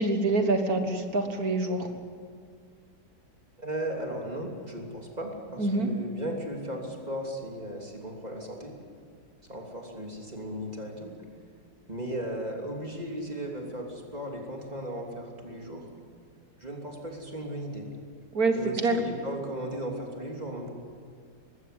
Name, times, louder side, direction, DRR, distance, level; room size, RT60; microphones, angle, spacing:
voice 1, 0.0-1.9 5.6-5.9 18.3-19.0, right 2 dB, 55° right, 6 dB, 1.8 m, -26 dB
voice 2, 3.6-8.7 9.5-11.1 11.9-15.9 16.6-17.9 18.5-20.7, right 1 dB, 20° right, 0 dB, 3.2 m, -36 dB
20.5 x 16.0 x 9.6 m, 2.1 s
omnidirectional pair, 1.9 m